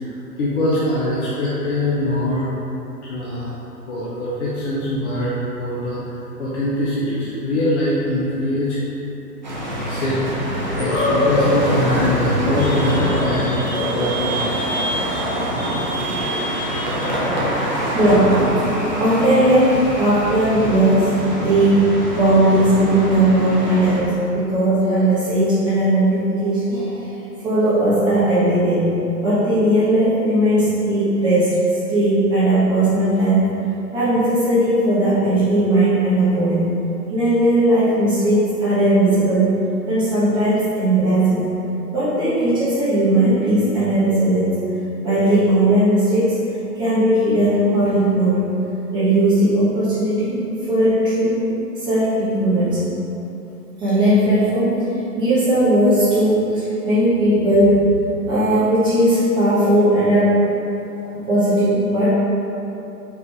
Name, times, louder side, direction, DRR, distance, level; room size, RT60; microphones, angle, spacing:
voice 1, 0.0-2.5 3.0-3.5 3.9-5.3 5.6-8.8 9.9-14.6 15.8-17.8, left 1 dB, 45° left, -8 dB, 0.7 m, -23 dB
sound 1, 9.4-24.0, equal, 30° right, 0.3 m, -24 dB
voice 2, 17.9-18.4 19.0-27.1 27.4-28.9 29.2-33.5 33.9-36.7 37.1-39.6 39.9-41.5 41.9-44.7 45.0-46.4 46.8-48.4 48.9-50.4 50.7-51.4 51.8-52.8 53.8-54.8 55.2-57.8 58.3-60.4 61.3-62.1, right 1 dB, 10° right, -13 dB, 1.0 m, -17 dB
4.6 x 2.6 x 3.2 m, 2.9 s
figure-of-eight pair, 130°, 49 cm